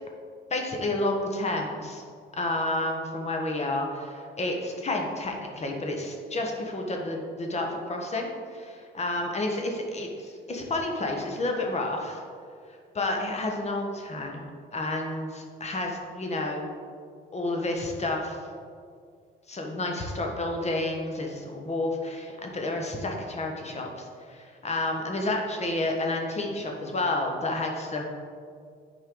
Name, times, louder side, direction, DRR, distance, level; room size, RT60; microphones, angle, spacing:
voice 1, 0.5-2.0 2.3-12.2 12.9-16.7 17.3-18.4 19.5-28.0, left 2 dB, 35° left, 1 dB, 1.3 m, -30 dB
10.0 x 4.4 x 3.9 m, 2.2 s
cardioid pair, 90°, 20 cm